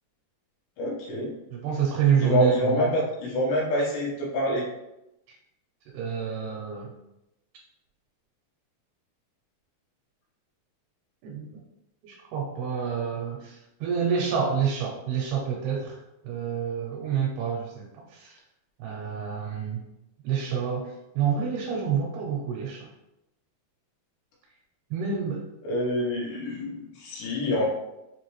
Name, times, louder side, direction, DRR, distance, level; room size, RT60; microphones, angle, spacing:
voice 1, 0.8-1.3 2.2-4.7 25.6-27.7, equal, 75° left, -4 dB, 3.0 m, -26 dB
voice 2, 1.5-2.9 5.3-5.4 5.9-6.9 11.2-11.6 12.0-16.0 16.2-18.3 18.8-19.9 20.2-22.9 24.9-25.4, right 7 dB, 80° right, -1 dB, 2.4 m, -28 dB
6.9 x 2.5 x 3.0 m, 0.90 s
omnidirectional pair, 5.0 m